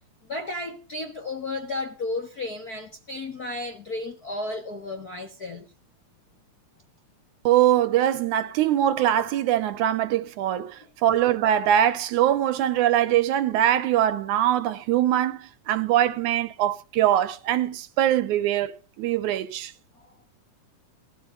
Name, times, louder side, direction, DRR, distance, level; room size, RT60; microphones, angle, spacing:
voice 1, 0.3-5.7, left 2 dB, 50° left, 1.1 m, -33 dB
voice 2, 7.5-18.7 19.0-19.7, right 11 dB, 75° right, 2.2 m, -22 dB
20.0 x 14.0 x 2.7 m
omnidirectional pair, 3.7 m